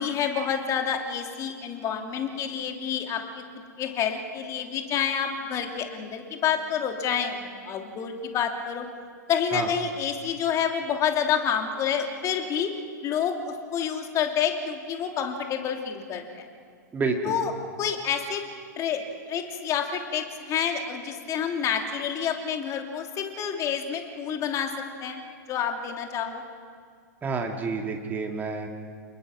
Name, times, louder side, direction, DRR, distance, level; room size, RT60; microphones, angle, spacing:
voice 1, 0.0-3.4 3.8-8.8 9.3-12.7 13.0-16.4 17.3-17.5 17.8-18.4 18.8-19.0 19.3-24.7 25.0-25.2 25.5-26.4, left 8 dB, 30° left, 4 dB, 2.9 m, -28 dB
voice 2, 16.9-17.4 27.2-28.7, right 4 dB, 20° right, 2 dB, 2.3 m, -29 dB
28.5 x 20.5 x 6.2 m, 2.1 s
figure-of-eight pair, 100°, 10 cm